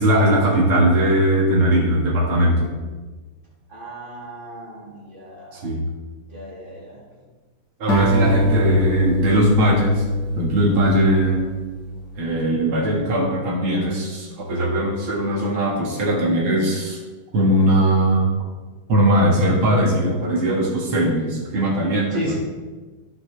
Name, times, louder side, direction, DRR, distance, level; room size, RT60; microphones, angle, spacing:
voice 1, 0.0-2.7 5.5-5.8 7.8-10.0 10.4-11.4 12.2-17.0 17.3-18.3 18.9-22.4, right 1 dB, 80° right, -2 dB, 2.8 m, -19 dB
voice 2, 3.7-5.7 6.3-7.0 8.3-8.7 22.1-22.4, right 1 dB, 35° right, -6 dB, 3.7 m, -35 dB
Acoustic guitar, 7.9-12.3, equal, 60° left, 2.2 m, -23 dB
15.0 x 6.0 x 3.4 m, 1.3 s
omnidirectional pair, 2.3 m